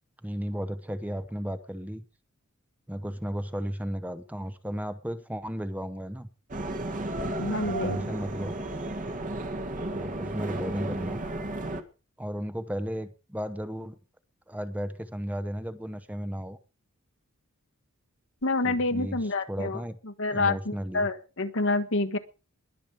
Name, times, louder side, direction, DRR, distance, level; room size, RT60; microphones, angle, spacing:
voice 1, 0.2-2.0 2.9-6.3 7.6-8.6 9.9-11.2 12.2-13.9 14.5-16.6 18.6-19.2 19.5-20.0 20.3-21.1, equal, 5° right, 10 dB, 0.9 m, -34 dB
sound 1, 6.5-11.8, right 2 dB, 40° right, 1.7 m, -33 dB
voice 2, 7.4-8.1 18.4-22.2, left 3 dB, 65° left, 10 dB, 1.4 m, -28 dB
21.5 x 7.3 x 4.9 m, 0.32 s
head